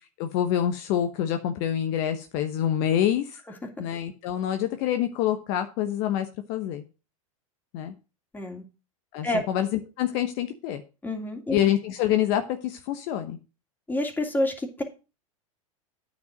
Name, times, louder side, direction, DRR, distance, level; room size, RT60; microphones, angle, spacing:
voice 1, 0.2-3.4 3.8-6.8 7.7-7.9 9.1-10.8 11.5-13.4, left 11 dB, 55° left, 7 dB, 1.0 m, -26 dB
voice 2, 11.0-11.6 13.9-14.8, left 1 dB, 10° left, 3 dB, 2.7 m, -28 dB
9.2 x 5.3 x 6.5 m, 0.31 s
hypercardioid pair, 95°, 18 cm